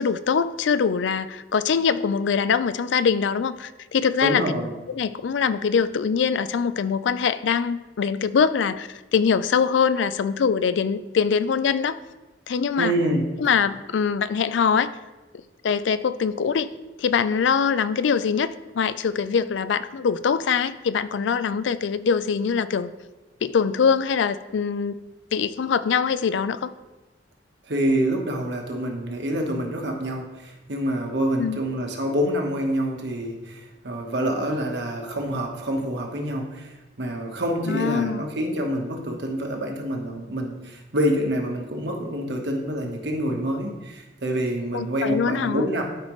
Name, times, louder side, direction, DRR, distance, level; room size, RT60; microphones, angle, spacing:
voice 1, 0.0-4.4 4.9-12.0 12.5-12.9 13.4-14.9 15.6-16.7 17.0-22.9 23.4-25.0 25.3-26.7 31.4-31.6 37.7-38.2 44.7-45.6, left 6 dB, 80° left, 14 dB, 0.4 m, -23 dB
voice 2, 4.2-4.7 12.8-13.2 27.7-45.8, equal, 65° right, 2 dB, 1.2 m, -27 dB
12.5 x 5.0 x 3.1 m, 1.1 s
head